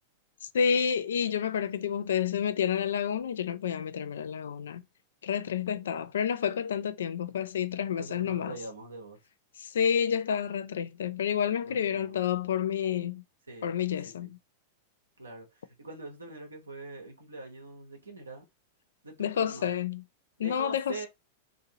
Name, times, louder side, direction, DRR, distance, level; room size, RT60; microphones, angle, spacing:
voice 1, 0.5-4.8 5.2-8.5 9.6-13.2 13.6-14.3 19.2-20.0 20.4-21.1, left 8 dB, 70° left, 0.3 m, -29 dB
voice 2, 8.0-9.2 11.6-12.3 13.5-14.3 15.2-15.5 15.8-18.4 19.0-19.7 20.4-21.1, right 3 dB, 85° right, 0.9 m, -43 dB
2.7 x 2.7 x 2.8 m
figure-of-eight pair, 95°, 0 cm